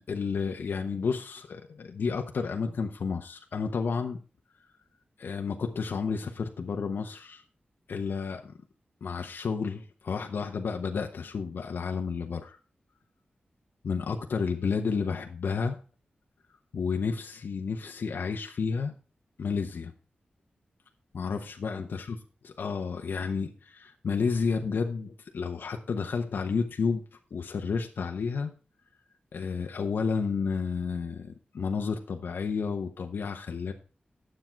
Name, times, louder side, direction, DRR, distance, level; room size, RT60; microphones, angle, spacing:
voice 1, 0.0-4.2 5.2-7.4 7.9-8.5 9.0-12.6 13.8-15.8 16.7-18.9 19.4-19.9 21.1-22.2 22.4-27.0 27.3-28.5 29.3-33.7, left 5 dB, 80° left, 4 dB, 0.9 m, -31 dB
9.8 x 7.6 x 4.5 m, 0.37 s
wide cardioid pair, 95°, 3 cm